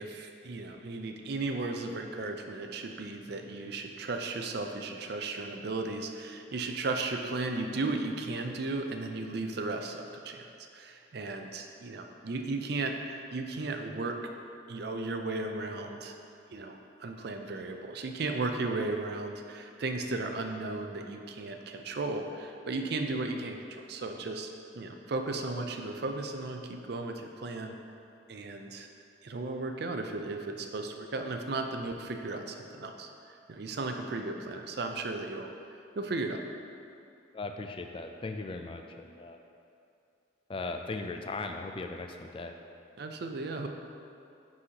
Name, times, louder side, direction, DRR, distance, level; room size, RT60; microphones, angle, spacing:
voice 1, 0.0-10.5 10.7-14.2 14.7-16.2 16.5-27.8 28.3-28.9 29.2-35.5 36.0-36.4 43.0-43.7, right 3 dB, 55° right, 4 dB, 0.5 m, -35 dB
voice 2, 37.3-39.4 40.5-42.6, left 3 dB, 25° left, 5 dB, 0.3 m, -38 dB
9.6 x 4.1 x 2.9 m, 2.6 s
head